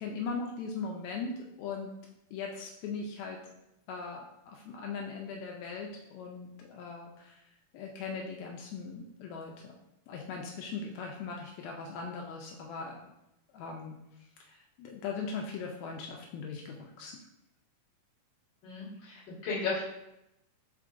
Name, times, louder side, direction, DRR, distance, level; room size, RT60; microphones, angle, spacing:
voice 1, 0.0-1.9 2.3-3.4 3.9-7.5 7.7-9.7 10.1-13.0 13.5-13.9 14.4-17.2, left 4 dB, 90° left, 0 dB, 1.5 m, -39 dB
voice 2, 18.6-19.8, left 4 dB, 45° left, -8 dB, 1.8 m, -35 dB
4.7 x 4.4 x 2.4 m, 0.86 s
omnidirectional pair, 3.7 m